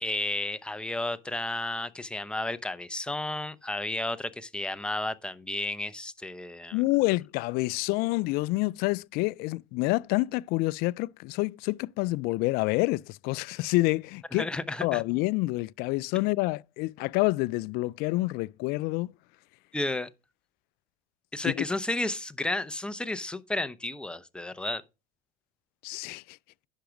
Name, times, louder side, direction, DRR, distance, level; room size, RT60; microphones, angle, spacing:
voice 1, 0.0-6.8 14.3-15.0 19.7-20.1 21.3-24.8, left 2 dB, 5° left, 0.7 m, -32 dB
voice 2, 6.7-14.5 14.8-19.1 21.4-21.6 25.8-26.4, left 21 dB, 60° left, 0.4 m, -28 dB
10.5 x 5.9 x 5.0 m
supercardioid pair, 100°, 18 cm